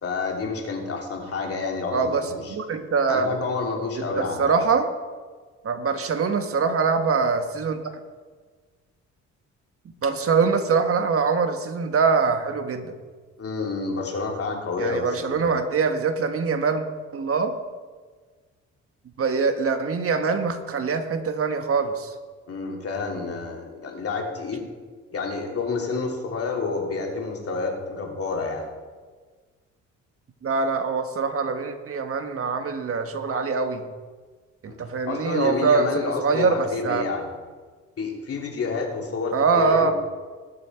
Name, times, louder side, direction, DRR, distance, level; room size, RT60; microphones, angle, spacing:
voice 1, 0.0-2.6 3.1-4.5 13.4-15.5 22.5-24.7 25.1-28.7 34.7-34.8 35.1-37.3 38.0-39.9, left 4 dB, 50° left, 0 dB, 2.9 m, -29 dB
voice 2, 1.9-3.3 3.9-4.9 5.6-7.8 10.0-12.9 14.8-16.8 17.1-17.6 19.2-22.1 30.4-33.8 34.6-37.1 39.3-39.9, right 5 dB, 50° right, 7 dB, 1.4 m, -23 dB
19.5 x 7.0 x 4.6 m, 1.5 s
cardioid pair, 90°, 30 cm